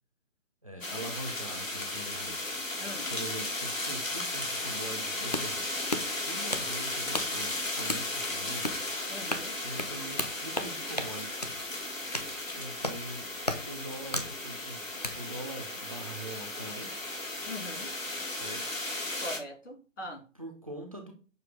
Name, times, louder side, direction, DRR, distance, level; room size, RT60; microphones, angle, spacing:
voice 1, 0.6-2.4 3.1-5.6 5.9-8.7 9.6-11.5 12.6-13.3 13.7-14.8 15.2-16.9 18.3-18.6 20.0-21.1, right 1 dB, 30° right, 0.5 m, -42 dB
sound 1, 0.8-19.4, left 2 dB, 85° left, 1.7 m, -35 dB
voice 2, 2.8-3.1 9.1-9.6 17.5-17.9 19.2-20.2, left 1 dB, 70° left, 2.5 m, -41 dB
sound 2, 5.2-15.2, left 1 dB, 35° left, 0.4 m, -37 dB
6.6 x 2.3 x 3.5 m
figure-of-eight pair, 155°, 38 cm